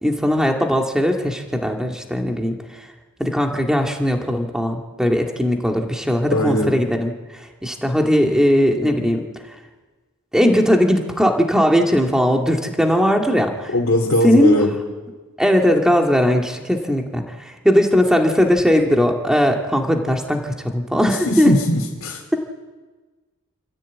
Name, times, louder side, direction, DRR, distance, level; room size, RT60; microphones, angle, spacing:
voice 1, 0.0-2.6 3.2-9.2 10.3-13.7 14.2-14.6 15.4-21.5, equal, 5° right, 2 dB, 2.2 m, -18 dB
voice 2, 6.3-6.7 13.7-14.7 21.3-22.2, left 1 dB, 70° left, -2 dB, 2.9 m, -19 dB
27.5 x 15.0 x 8.6 m, 1.3 s
head